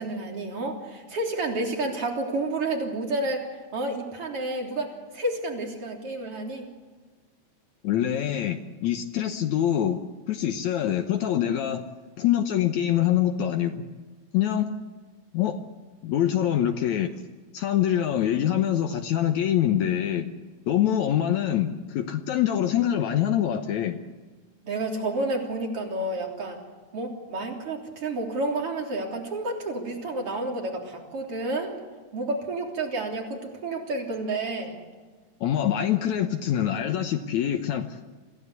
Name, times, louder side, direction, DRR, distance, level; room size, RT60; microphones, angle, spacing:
voice 1, 0.0-6.7 24.6-26.6 26.9-31.8 32.1-34.8, right 2 dB, 45° right, 1 dB, 4.3 m, -30 dB
voice 2, 7.8-10.0 10.3-11.8 12.2-13.8 14.3-14.7 15.3-15.6 16.0-17.1 17.5-20.3 20.7-24.0 35.4-38.0, left 10 dB, 70° left, 6 dB, 2.3 m, -25 dB
26.5 x 16.0 x 8.3 m, 1.4 s
omnidirectional pair, 3.5 m